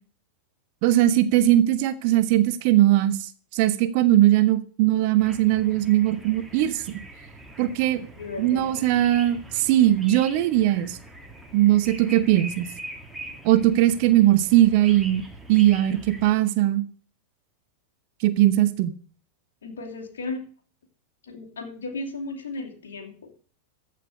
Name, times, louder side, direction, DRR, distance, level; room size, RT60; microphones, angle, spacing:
voice 1, 0.8-7.0 7.6-8.0 8.4-11.0 11.5-12.7 13.4-15.2 15.5-16.8 18.2-18.9, right 13 dB, 45° right, 12 dB, 0.9 m, -20 dB
sound 1, 5.2-16.3, right 1 dB, 5° right, 2.1 m, -43 dB
voice 2, 8.2-8.8 19.6-20.4 21.2-23.3, left 3 dB, 65° left, 1 dB, 2.8 m, -35 dB
14.5 x 5.2 x 7.8 m, 0.43 s
figure-of-eight pair, 90°, 0 cm